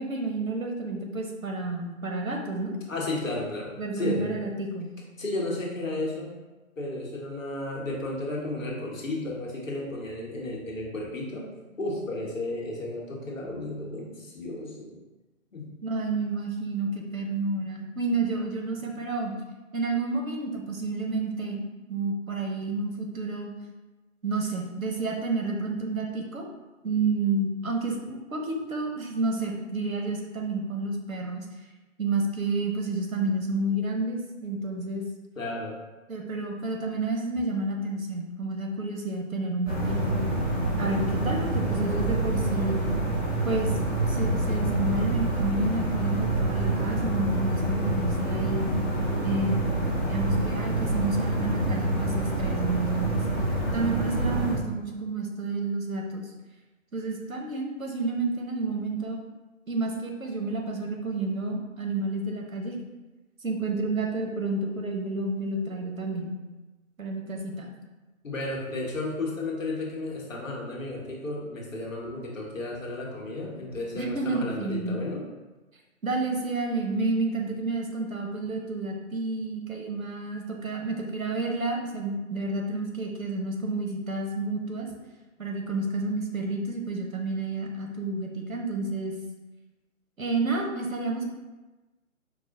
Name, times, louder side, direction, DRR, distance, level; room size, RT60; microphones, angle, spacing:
voice 1, 0.0-2.7 3.8-4.9 15.8-19.3 19.7-23.5 24.2-26.5 26.8-31.5 32.0-35.0 36.1-40.3 40.8-42.8 43.4-48.7 49.2-49.7 50.1-53.2 53.7-56.3 56.9-59.2 59.7-62.8 63.4-66.3 67.0-67.7 74.0-75.0 76.0-84.9 85.4-89.1 90.2-91.3, right 3 dB, 80° right, 1 dB, 0.8 m, -30 dB
voice 2, 2.9-4.5 5.2-6.3 6.8-11.5 11.8-14.9 15.5-15.7 18.8-18.9 35.4-35.7 68.2-75.2, left 2 dB, 70° left, -3 dB, 1.0 m, -33 dB
sound 1, 39.6-54.5, right 2 dB, 15° right, 0.7 m, -27 dB
4.7 x 2.1 x 2.7 m, 1.1 s
figure-of-eight pair, 135°, 41 cm